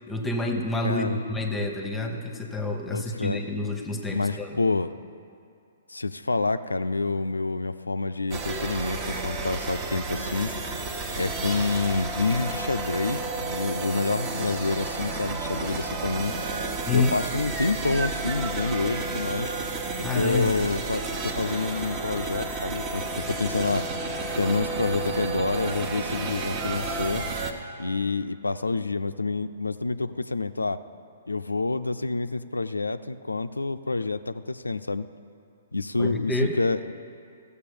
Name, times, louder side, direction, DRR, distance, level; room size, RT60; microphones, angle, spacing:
voice 1, 0.1-4.6 16.8-17.1 20.0-20.5 36.0-36.6, left 2 dB, 10° left, 4 dB, 1.0 m, -28 dB
voice 2, 0.8-1.2 2.9-3.4 4.1-4.9 5.9-10.9 11.1-16.4 16.9-19.5 20.1-23.9 24.4-27.3 27.8-30.8 31.3-35.1 35.7-36.9, left 3 dB, 85° left, 11 dB, 0.4 m, -28 dB
sound 1, 8.3-27.5, right 3 dB, 30° right, 1.1 m, -31 dB
14.5 x 6.9 x 6.8 m, 2.4 s
figure-of-eight pair, 125°, 0 cm